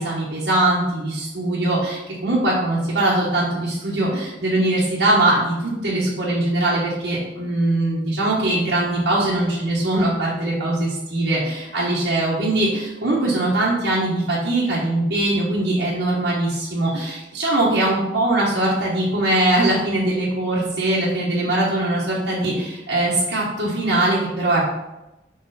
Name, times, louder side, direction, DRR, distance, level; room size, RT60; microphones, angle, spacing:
voice 1, 0.0-24.8, right 1 dB, 70° right, -7 dB, 1.2 m, -21 dB
5.9 x 4.0 x 4.1 m, 0.98 s
head